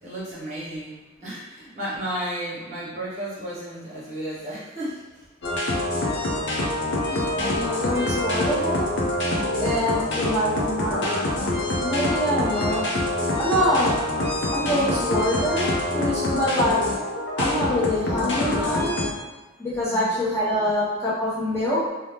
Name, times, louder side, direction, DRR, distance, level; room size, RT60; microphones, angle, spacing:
voice 1, 0.0-5.0 12.7-12.9 19.9-20.3, right 1 dB, 35° right, -8 dB, 1.0 m, -33 dB
sound 1, 5.4-19.1, left 1 dB, 60° left, 0.5 m, -25 dB
voice 2, 7.1-8.9 9.6-11.1 11.8-12.8 13.4-14.0 14.5-16.8 17.4-18.9 19.6-21.8, left 1 dB, 15° left, -10 dB, 0.7 m, -25 dB
2.6 x 2.0 x 3.2 m, 1.2 s
head